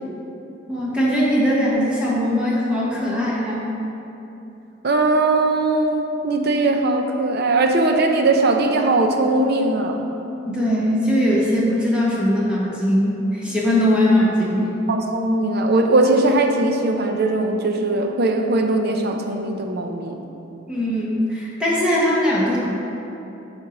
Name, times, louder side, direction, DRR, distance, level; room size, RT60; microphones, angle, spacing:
voice 1, 0.7-3.7 10.4-14.8 20.7-22.6, equal, 5° right, -7 dB, 1.2 m, -20 dB
voice 2, 4.8-10.0 14.9-20.2, right 2 dB, 55° right, 4 dB, 0.7 m, -19 dB
12.0 x 4.5 x 3.9 m, 3.0 s
head